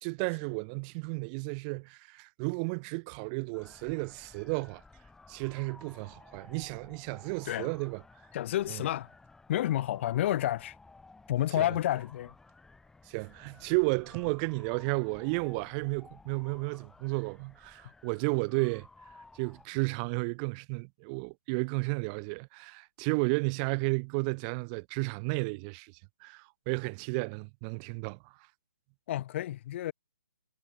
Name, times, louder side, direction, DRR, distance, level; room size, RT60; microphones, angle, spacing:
voice 1, 0.0-4.8 5.3-8.0 11.6-11.7 13.1-18.9 19.3-28.3, right 34 dB, 25° right, 2.7 m, -33 dB
sound 1, 3.5-19.7, left 3 dB, 5° left, 4.8 m, -56 dB
voice 2, 8.3-9.1 9.5-10.8 11.3-12.3 29.1-29.9, left 13 dB, 40° left, 6.4 m, -30 dB
figure-of-eight pair, 140°, 10 cm